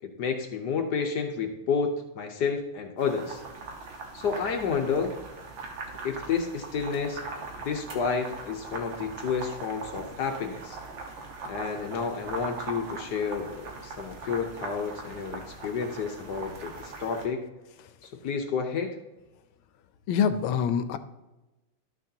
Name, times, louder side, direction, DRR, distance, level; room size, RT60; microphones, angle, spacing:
voice 1, 0.0-3.4 4.1-5.1 6.0-7.2 7.6-10.8 11.5-17.4 18.0-19.0, left 5 dB, 65° left, 4 dB, 1.1 m, -30 dB
sound 1, 3.0-17.2, right 3 dB, 65° right, 2.0 m, -40 dB
voice 2, 20.1-21.0, left 7 dB, 80° left, 11 dB, 1.4 m, -25 dB
12.0 x 6.2 x 2.8 m, 1.0 s
omnidirectional pair, 2.3 m